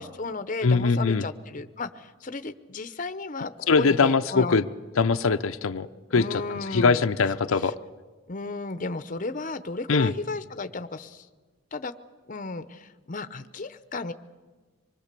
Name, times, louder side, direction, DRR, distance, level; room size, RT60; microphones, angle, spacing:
voice 1, 0.0-4.6 6.1-7.0 8.3-11.3 11.7-11.9 12.3-14.1, left 3 dB, 40° left, 11 dB, 0.8 m, -34 dB
voice 2, 0.6-1.2 3.7-4.7 5.0-5.9 6.1-6.4 6.7-7.7 9.9-10.1, left 4 dB, 85° left, 9 dB, 0.6 m, -22 dB
25.0 x 22.0 x 6.8 m, 1.4 s
head